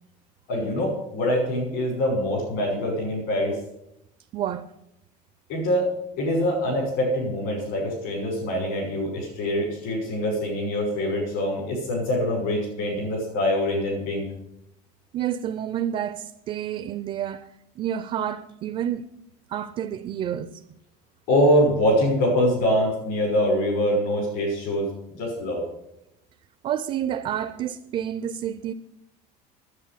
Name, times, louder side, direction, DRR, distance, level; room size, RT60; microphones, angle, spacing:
voice 1, 0.5-3.6 5.5-5.9 6.2-14.3 21.3-25.7, equal, 70° left, 6.0 m, -24 dB
voice 2, 4.3-4.7 15.1-19.1 19.5-20.6 26.6-28.7, right 10 dB, 35° right, 0.5 m, -29 dB
9.7 x 8.7 x 8.6 m
cardioid pair, 150°, 17 cm